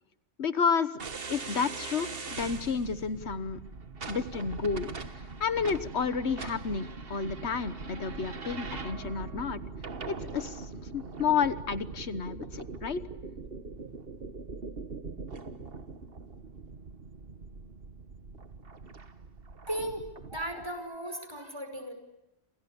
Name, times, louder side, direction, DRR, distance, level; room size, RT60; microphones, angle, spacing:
voice 1, 0.4-1.0 1.3-3.6 4.1-4.9 5.4-9.6 10.1-13.0, left 6 dB, 85° left, 14 dB, 1.5 m, -31 dB
sound 1, 1.0-20.7, right 4 dB, 60° right, 1.7 m, -41 dB
voice 2, 19.7-20.0 20.3-21.9, right 1 dB, 25° right, 7 dB, 5.4 m, -36 dB
28.0 x 28.0 x 7.1 m, 0.92 s
omnidirectional pair, 1.1 m